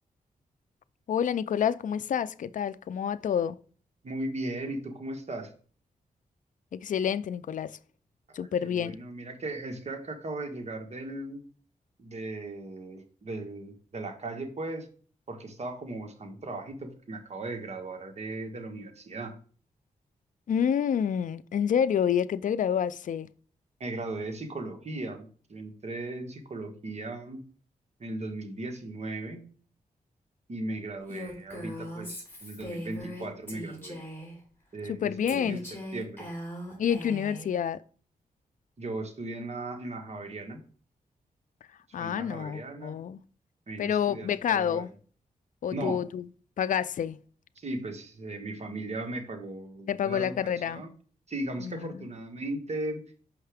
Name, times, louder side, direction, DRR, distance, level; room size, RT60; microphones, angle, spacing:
voice 1, 1.1-3.6 6.7-7.8 8.3-9.0 20.5-23.3 34.9-35.6 36.8-37.8 41.9-43.2 43.8-44.9 45.6-46.2 46.6-47.2 49.9-50.9 51.6-52.0, left 8 dB, 60° left, 0.4 m, -28 dB
voice 2, 4.0-5.5 8.3-11.4 12.0-14.9 15.3-19.3 23.8-27.4 28.0-29.4 30.5-34.0 34.7-35.6 35.9-36.3 38.8-40.6 42.0-43.0 43.7-44.9 45.7-46.0 47.6-50.9 51.3-53.0, right 2 dB, 50° right, 1.3 m, -37 dB
Female speech woman speaking, 31.1-34.4 35.3-37.5, equal, 15° left, 3.2 m, -39 dB
5.6 x 5.5 x 3.4 m
cardioid pair, 75°, 15 cm